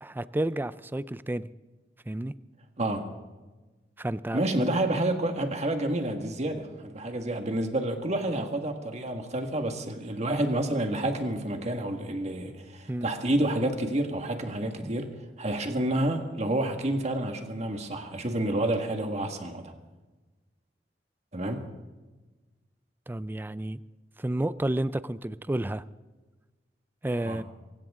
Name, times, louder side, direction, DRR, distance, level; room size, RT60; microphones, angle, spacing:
voice 1, 0.0-1.4 2.1-2.3 4.0-4.4 12.9-13.1 23.1-23.8 24.2-25.8 27.0-27.4, right 1 dB, 10° right, 16 dB, 0.4 m, -30 dB
voice 2, 4.3-15.1 15.4-19.7 21.3-21.7 27.1-27.4, right 1 dB, 40° right, 5 dB, 1.8 m, -29 dB
24.0 x 15.5 x 3.7 m, 1.2 s
head